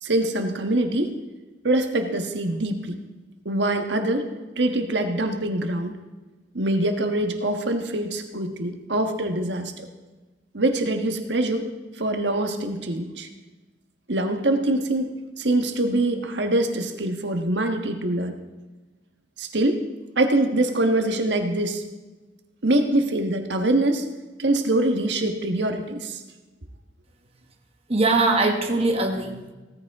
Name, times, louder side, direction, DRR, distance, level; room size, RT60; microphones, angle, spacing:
voice 1, 0.0-1.1 1.6-3.0 3.4-4.3 4.6-5.9 6.5-9.9 10.5-11.7 12.0-13.3 14.1-15.1 15.4-18.4 19.4-19.8 20.2-21.8 22.6-24.0 24.4-26.2, right 1 dB, 75° right, 5 dB, 1.4 m, -24 dB
voice 2, 27.9-29.5, right 2 dB, 35° right, 3 dB, 1.3 m, -21 dB
17.0 x 14.5 x 3.7 m, 1.2 s
head